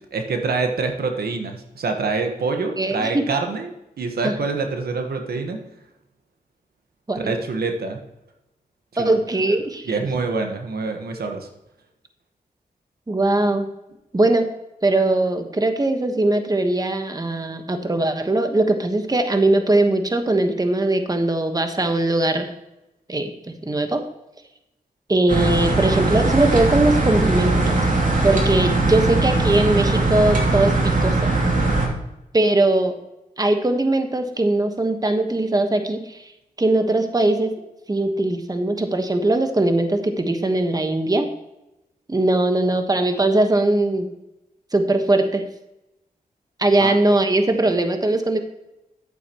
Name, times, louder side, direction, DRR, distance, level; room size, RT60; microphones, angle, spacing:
voice 1, 0.1-5.6 7.1-8.0 9.0-9.1 9.8-11.5 46.8-46.9, right 4 dB, 80° right, 4 dB, 1.4 m, -25 dB
voice 2, 2.8-3.2 4.2-4.3 7.1-7.3 9.0-9.9 13.1-13.7 14.1-14.5 14.8-22.5 23.1-24.0 25.1-27.8 28.2-30.7 31.0-31.3 32.3-32.9 33.4-36.3 36.6-37.5 37.9-41.3 42.1-44.1 44.7-45.5 46.6-48.4, right 2 dB, 25° right, 6 dB, 1.3 m, -20 dB
sound 1, 25.3-31.9, right 2 dB, 55° right, 2.6 m, -20 dB
11.0 x 8.8 x 3.0 m, 0.90 s
cardioid pair, 60°, 16 cm